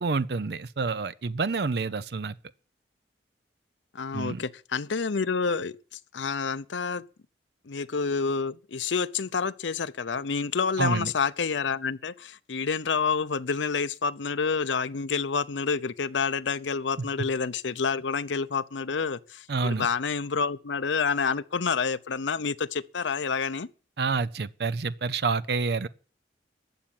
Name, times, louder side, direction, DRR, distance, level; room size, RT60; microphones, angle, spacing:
voice 1, 0.0-2.4 4.1-4.4 10.8-11.1 19.5-19.9 24.0-25.9, right 4 dB, 60° right, 0.5 m, -28 dB
voice 2, 3.9-5.8 6.1-7.0 7.7-23.7, left 5 dB, 90° left, 0.7 m, -28 dB
12.0 x 7.3 x 8.8 m
head